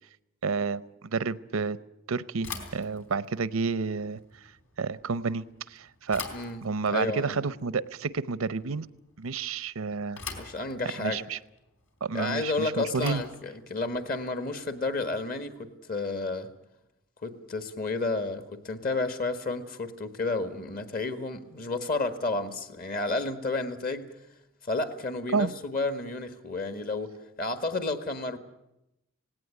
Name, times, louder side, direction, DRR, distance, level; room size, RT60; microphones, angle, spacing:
voice 1, 0.4-1.8 2.1-4.2 4.8-5.4 5.7-6.2 6.6-8.9 9.2-10.2 11.0-11.4 12.0-13.2 25.3-25.5, right 4 dB, 85° right, 17 dB, 0.7 m, -30 dB
Bicycle / Thump thud, 2.4-15.5, left 4 dB, 65° left, 3.8 m, -45 dB
voice 2, 6.9-7.4 10.4-11.3 12.1-16.5 17.2-24.1 24.7-27.1 27.4-28.4, left 3 dB, 45° left, 9 dB, 1.7 m, -31 dB
18.0 x 17.5 x 9.9 m, 0.88 s
head